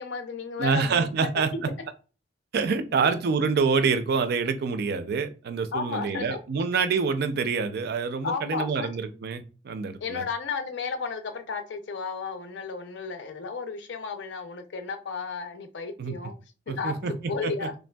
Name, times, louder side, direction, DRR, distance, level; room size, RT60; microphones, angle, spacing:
voice 1, 0.0-1.7 5.7-6.4 8.2-8.9 10.0-16.4 16.7-17.0 17.3-17.7, left 5 dB, 70° left, 0.5 m, -33 dB
voice 2, 0.6-1.5 2.5-10.2 16.0-16.1 16.7-17.7, right 5 dB, 60° right, 0.4 m, -26 dB
3.3 x 2.5 x 2.2 m
head